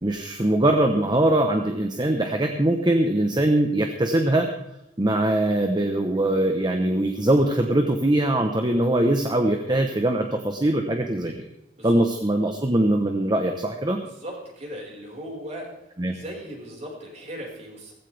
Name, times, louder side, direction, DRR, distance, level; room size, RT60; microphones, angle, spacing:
voice 1, 0.0-4.5 5.0-11.3 11.8-14.0 16.0-16.1, right 1 dB, 25° right, 4 dB, 1.1 m, -22 dB
voice 2, 14.0-15.7 16.1-17.9, equal, 40° right, -2 dB, 5.2 m, -38 dB
17.0 x 16.0 x 3.5 m, 0.86 s
head